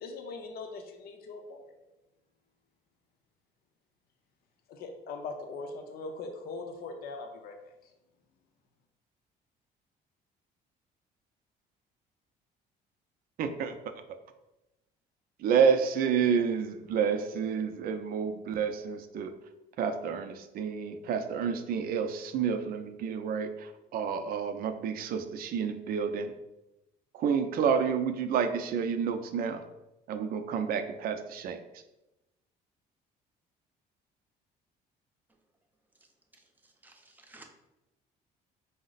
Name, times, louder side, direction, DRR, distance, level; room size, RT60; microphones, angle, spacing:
voice 1, 0.0-1.7 4.7-7.5, left 3 dB, 65° left, 4 dB, 0.6 m, -41 dB
voice 2, 13.4-13.7 15.4-19.3 19.8-26.3 27.1-29.7 30.1-31.6, right 6 dB, 60° right, 8 dB, 0.5 m, -29 dB
voice 3, 36.3-37.5, right 2 dB, 10° right, 2 dB, 0.6 m, -56 dB
4.8 x 2.1 x 3.9 m, 0.96 s
cardioid pair, 110°, 17 cm